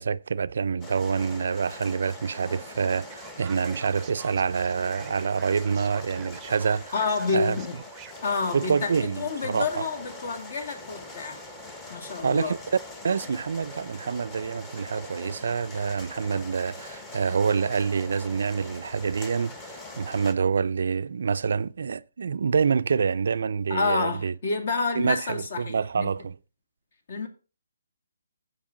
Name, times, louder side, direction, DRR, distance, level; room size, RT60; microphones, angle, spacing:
voice 1, 0.0-6.9 7.3-7.6 8.5-9.8 12.2-12.6 13.0-24.3 24.9-26.4, right 6 dB, 65° right, 0.4 m, -27 dB
sound 1, 0.8-20.3, left 2 dB, 10° left, 1.0 m, -43 dB
Male speech man speaking, 3.1-8.9, right 10 dB, 15° right, 0.7 m, -47 dB
voice 2, 6.9-7.7 8.2-11.4 11.9-12.6 23.7-26.1 27.1-27.3, left 4 dB, 50° left, 2.2 m, -29 dB
14.5 x 5.2 x 3.8 m
hypercardioid pair, 160°, 0 cm